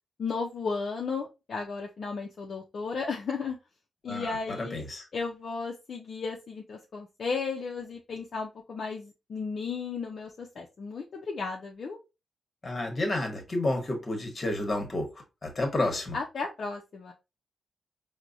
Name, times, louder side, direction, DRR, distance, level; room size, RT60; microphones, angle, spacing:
voice 1, 0.2-3.6 4.0-4.9 5.1-12.0 16.1-17.1, left 4 dB, 55° left, 0.5 m, -34 dB
voice 2, 4.1-5.1 12.6-15.1 15.4-16.1, left 2 dB, 35° left, 1.2 m, -30 dB
4.5 x 2.1 x 2.6 m
cardioid pair, 85°, 0 cm